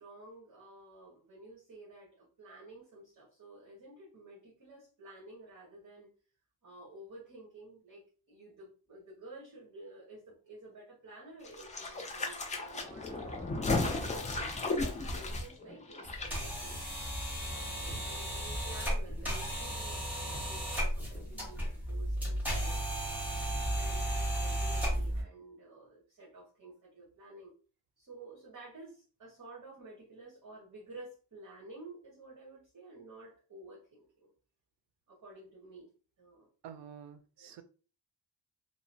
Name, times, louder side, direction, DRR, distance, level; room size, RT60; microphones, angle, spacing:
voice 1, 0.0-6.1 6.6-13.5 14.0-16.8 17.3-23.3 23.7-27.5 28.0-34.3 35.1-35.9 36.2-36.5 37.4-37.6, right 2 dB, 45° right, 1.1 m, -52 dB
sound 1, 11.4-16.3 16.6-16.7, left 2 dB, 20° left, 0.3 m, -35 dB
sound 2, 16.0-25.2, equal, 5° right, 1.1 m, -34 dB
voice 2, 36.6-37.6, right 8 dB, 75° right, 0.5 m, -49 dB
2.9 x 2.0 x 2.6 m
wide cardioid pair, 135°, 44 cm